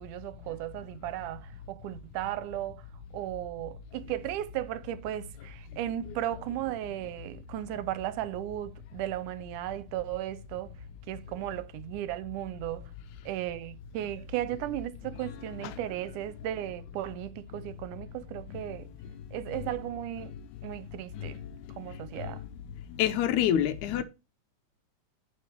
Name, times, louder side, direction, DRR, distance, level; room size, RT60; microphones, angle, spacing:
voice 1, 0.0-2.8 3.1-10.7 11.1-12.9 13.3-18.9 19.3-20.3 20.6-21.4 21.8-22.4, right 13 dB, 80° right, 2.1 m, -35 dB
voice 2, 23.0-24.0, left 10 dB, 80° left, 2.0 m, -26 dB
10.0 x 5.0 x 4.4 m
omnidirectional pair, 3.6 m